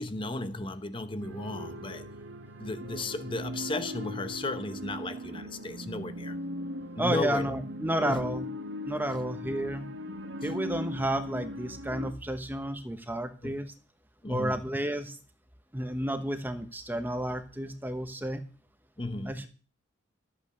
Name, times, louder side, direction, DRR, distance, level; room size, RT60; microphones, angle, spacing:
voice 1, 0.0-2.1 2.6-6.4 6.9-7.5 8.0-8.3 10.4-10.5 13.4-13.6 14.2-14.7 19.0-19.5, left 2 dB, 25° left, 0.9 m, -35 dB
sound 1, 1.2-12.1, equal, 75° right, 1.3 m, -39 dB
voice 2, 7.0-8.5 8.9-9.9 10.4-13.7 14.3-15.1 15.7-18.4 19.3-19.5, right 1 dB, 10° right, 1.0 m, -31 dB
13.0 x 8.6 x 6.6 m
head